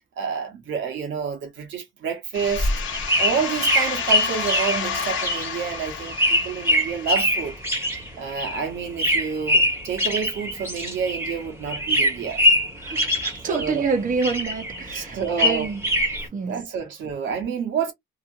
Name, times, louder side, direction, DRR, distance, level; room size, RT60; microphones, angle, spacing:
voice 1, 0.2-2.7 3.2-7.6 8.2-12.4 13.4-13.9 14.9-15.7 16.5-17.9, right 6 dB, 75° right, 1.2 m, -28 dB
sound 1, 2.3-7.8, left 7 dB, 80° left, 1.0 m, -31 dB
sound 2, 2.4-11.4 11.7-13.9 14.2-16.3, left 1 dB, 10° right, 1.2 m, -23 dB
voice 2, 12.8-15.8 16.3-16.6, right 4 dB, 40° right, 0.9 m, -27 dB
2.9 x 2.5 x 2.5 m
cardioid pair, 90°, 20 cm